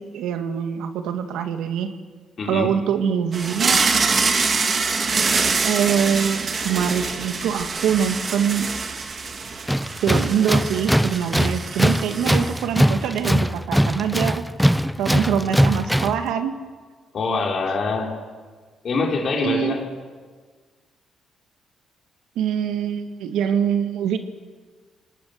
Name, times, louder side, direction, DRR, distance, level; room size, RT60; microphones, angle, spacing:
voice 1, 0.0-1.9 2.5-4.1 5.6-8.7 10.0-16.5 19.4-19.8 22.4-24.2, right 8 dB, 85° right, 7 dB, 1.8 m, -24 dB
voice 2, 2.4-2.7 17.1-18.2 18.8-19.8, left 3 dB, 50° left, 1 dB, 4.3 m, -24 dB
sound 1, 3.3-12.8, right 4 dB, 40° right, 2.1 m, -25 dB
Tools, 9.7-16.3, equal, ahead, 0.6 m, -21 dB
26.5 x 19.0 x 6.5 m, 1.5 s
cardioid pair, 90°, 0 cm